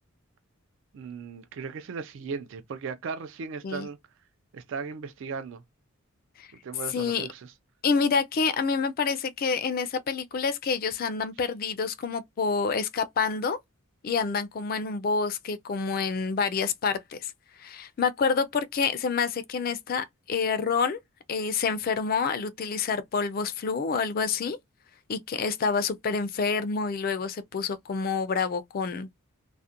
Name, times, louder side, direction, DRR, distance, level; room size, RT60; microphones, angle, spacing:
voice 1, 0.9-4.0 4.5-5.6 6.6-7.5, right 5 dB, 55° right, 0.3 m, -37 dB
voice 2, 6.9-7.3 7.8-13.6 14.0-17.3 17.6-21.0 21.3-24.6 25.1-29.1, left 5 dB, 40° left, 0.3 m, -28 dB
2.4 x 2.1 x 2.6 m
head